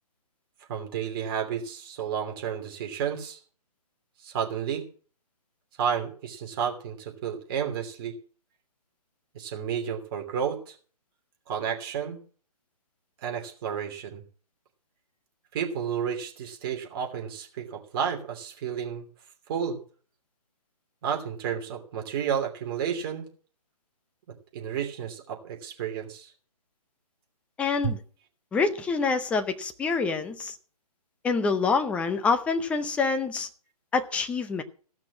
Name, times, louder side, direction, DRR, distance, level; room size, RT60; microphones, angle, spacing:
voice 1, 0.7-3.4 4.2-4.8 5.8-8.1 9.3-10.7 11.5-12.2 13.2-14.2 15.5-19.1 19.5-19.8 21.0-23.3 24.5-26.3 27.8-27.9, right 8 dB, 35° right, 2.8 m, -31 dB
voice 2, 27.6-28.0 28.5-30.6 31.2-33.5 33.9-34.6, left 4 dB, 5° left, 0.6 m, -26 dB
16.0 x 6.0 x 7.3 m
figure-of-eight pair, 140°, 20 cm